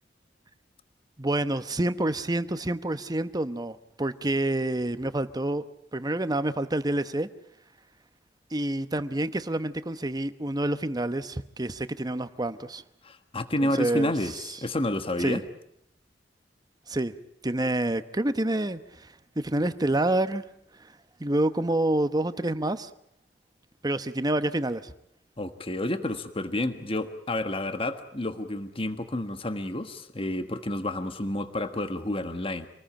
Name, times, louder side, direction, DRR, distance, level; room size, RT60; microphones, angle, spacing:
voice 1, 1.2-5.6 5.9-7.3 8.5-12.8 13.6-14.4 15.2-15.4 16.9-17.1 17.4-20.4 20.8-20.9 21.2-22.9 23.8-24.9, right 1 dB, 20° right, 12 dB, 1.0 m, -28 dB
voice 2, 13.0-14.3 14.6-15.4 25.4-32.7, left 1 dB, 30° left, 9 dB, 1.5 m, -30 dB
27.0 x 20.0 x 8.8 m, 0.71 s
head